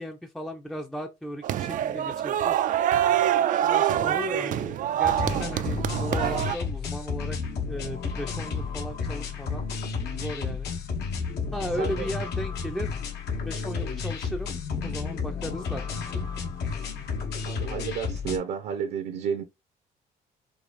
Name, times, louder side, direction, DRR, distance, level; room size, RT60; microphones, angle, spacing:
voice 1, 0.0-2.8 3.6-7.4 7.7-9.7 10.1-10.7 11.5-13.0 13.4-14.5 14.8-16.2, equal, ahead, 0.5 m, -36 dB
sound 1, 1.4-6.6, right 11 dB, 50° right, 0.4 m, -25 dB
sound 2, 5.0-18.4, left 5 dB, 75° left, 1.3 m, -32 dB
voice 2, 17.4-19.4, right 7 dB, 70° right, 0.8 m, -31 dB
4.9 x 2.4 x 2.5 m
cardioid pair, 110°, 17 cm